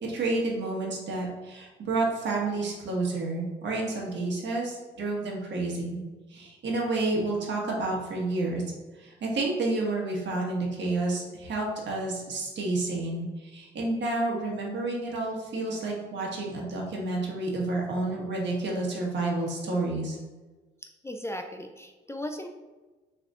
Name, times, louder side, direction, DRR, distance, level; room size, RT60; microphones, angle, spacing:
voice 1, 0.0-6.0 6.3-8.6 9.0-20.2, right 2 dB, 65° right, -2 dB, 1.5 m, -30 dB
voice 2, 21.0-22.5, left 1 dB, 15° left, 4 dB, 0.4 m, -36 dB
6.3 x 3.4 x 2.5 m, 1.3 s
cardioid pair, 90°, 20 cm